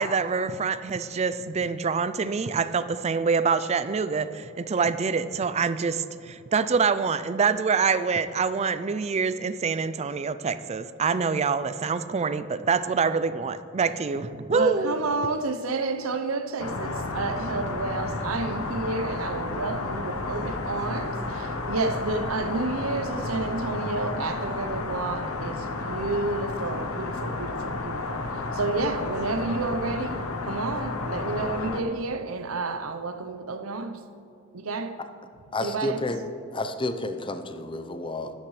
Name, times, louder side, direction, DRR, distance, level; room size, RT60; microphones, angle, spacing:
voice 1, 0.0-14.9, right 5 dB, 30° right, 0.4 m, -25 dB
voice 2, 14.5-34.0 34.5-35.0 35.6-36.1, right 3 dB, 80° right, 0.8 m, -30 dB
sound 1, 16.6-31.8, left 3 dB, 90° left, 1.0 m, -32 dB
voice 3, 35.5-36.2 36.5-38.3, left 2 dB, 25° left, 0.7 m, -30 dB
13.0 x 11.5 x 3.2 m
head